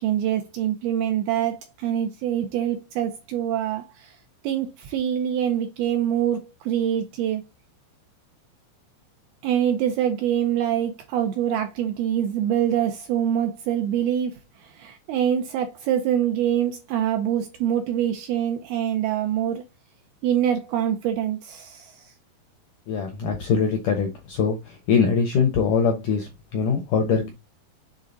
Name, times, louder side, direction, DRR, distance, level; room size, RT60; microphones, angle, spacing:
voice 1, 0.0-4.2 4.4-7.4 9.4-14.3 14.6-19.6 20.2-22.1, right 10 dB, 80° right, 2.3 m, -25 dB
voice 2, 22.9-27.3, left 5 dB, 75° left, 1.9 m, -23 dB
7.5 x 3.9 x 3.9 m
omnidirectional pair, 5.2 m